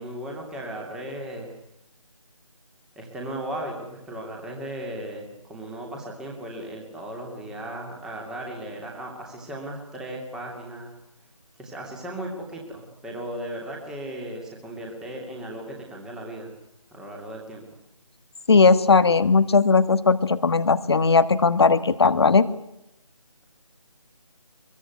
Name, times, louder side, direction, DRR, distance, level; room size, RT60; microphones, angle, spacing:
voice 1, 0.0-1.5 3.0-10.9 11.6-16.5 16.9-17.6, right 1 dB, 5° right, 0 dB, 2.7 m, -36 dB
voice 2, 18.5-22.5, left 4 dB, 50° left, 13 dB, 1.5 m, -18 dB
24.0 x 23.0 x 9.5 m, 0.82 s
figure-of-eight pair, 165°, 18 cm